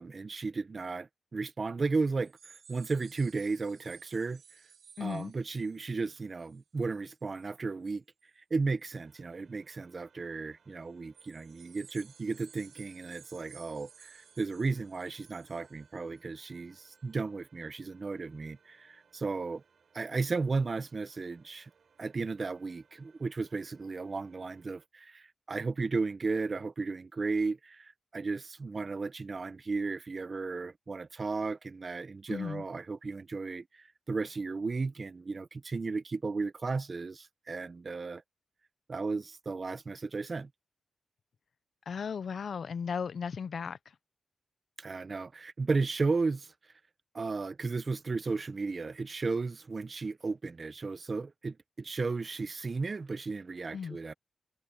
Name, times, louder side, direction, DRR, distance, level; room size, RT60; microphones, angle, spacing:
voice 1, 0.0-4.4 5.0-8.0 8.4-19.6 19.9-21.7 22.0-38.2 38.9-40.5 44.8-46.5 47.1-54.1, right 4 dB, 30° right, 0.7 m, -34 dB
sound 1, 2.2-7.6 7.9-8.2 8.8-8.9 11.1-16.4 16.9-17.0, right 7 dB, 70° right, 1.3 m, -57 dB
voice 2, 5.0-5.3 32.3-32.6 41.9-43.8 53.7-54.0, left 6 dB, 55° left, 0.5 m, -36 dB
sound 2, 8.9-24.9, right 6 dB, 55° right, 7.7 m, -67 dB
wide cardioid pair, 165°, 0 cm